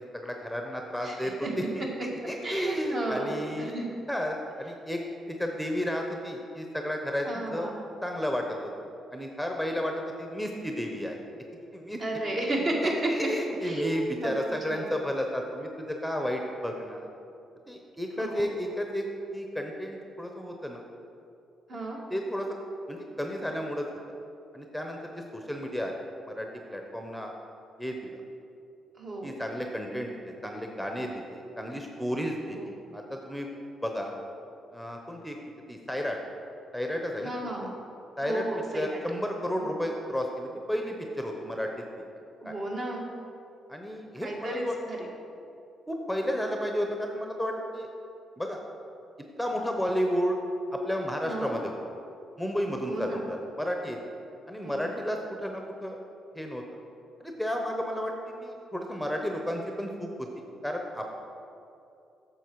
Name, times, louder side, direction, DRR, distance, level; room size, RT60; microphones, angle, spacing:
voice 1, 0.0-1.9 2.3-3.7 4.1-5.0 5.3-7.7 8.0-8.7 9.1-11.2 11.7-12.0 12.8-17.1 17.7-19.1 19.3-20.8 22.1-22.5 22.9-23.8 24.5-25.9 26.3-27.3 27.8-28.2 29.2-33.5 33.8-34.1 34.7-35.4 35.7-36.2 36.7-37.3 38.2-38.4 38.7-41.7 41.9-42.0 42.4-42.5 43.7-44.8 45.9-47.9 48.4-48.6 49.4-50.4 50.7-51.7 52.4-54.0 54.5-56.0 56.3-56.6 57.2-61.1, equal, ahead, 2 dB, 0.8 m, -32 dB
voice 2, 2.4-3.8 7.3-7.8 12.0-13.1 13.6-13.9 14.2-14.3 14.7-14.9 18.2-18.5 21.7-22.0 29.0-29.4 32.6-32.7 37.2-37.7 38.2-39.0 39.6-39.8 42.4-43.0 44.2-45.1 51.2-51.6 52.9-53.2 54.6-54.9, right 1 dB, 50° right, -1 dB, 1.8 m, -33 dB
9.2 x 6.7 x 4.7 m, 2.7 s
cardioid pair, 90°, 0 cm